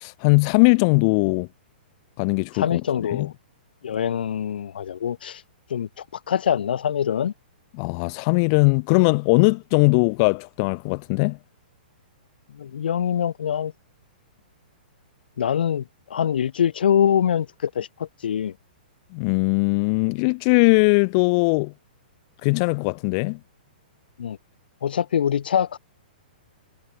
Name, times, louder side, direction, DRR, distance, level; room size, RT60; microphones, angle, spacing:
voice 1, 0.0-1.5 2.2-3.3 7.8-11.4 19.1-21.7 22.4-23.4, left 32 dB, 40° left, 0.5 m, -20 dB
voice 2, 2.5-3.3 3.8-5.4 5.7-7.3 12.5-13.7 15.4-15.8 16.1-18.5 24.2-24.4 24.8-25.8, left 9 dB, 75° left, 0.7 m, -24 dB
hypercardioid pair, 140°, 5 cm